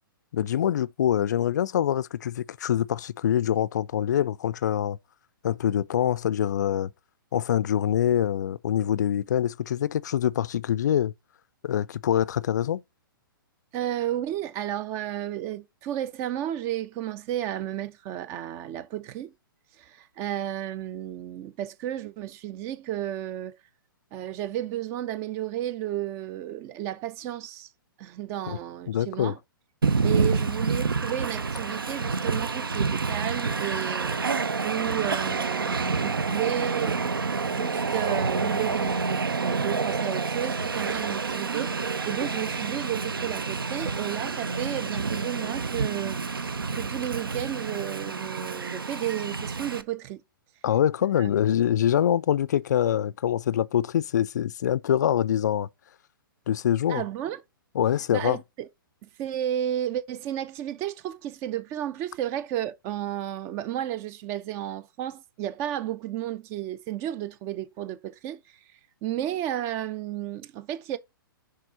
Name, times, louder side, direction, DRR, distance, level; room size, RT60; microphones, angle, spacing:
voice 1, 0.3-5.0 5.4-6.9 7.3-11.1 11.6-12.8 28.5-28.6 28.9-29.4 50.6-55.7 56.5-57.0 57.8-58.4, left 10 dB, 50° left, 0.4 m, -25 dB
voice 2, 13.7-19.3 19.8-23.6 24.1-27.7 28.0-29.4 30.0-34.2 34.6-37.1 37.4-46.2 46.7-50.2 51.2-51.3 56.9-57.4 58.1-58.7 59.0-68.4 69.0-71.0, right 12 dB, 20° right, 0.4 m, -32 dB
Train, 29.8-49.8, right 4 dB, 75° right, 0.6 m, -28 dB
6.6 x 3.8 x 4.2 m
figure-of-eight pair, 115°, 12 cm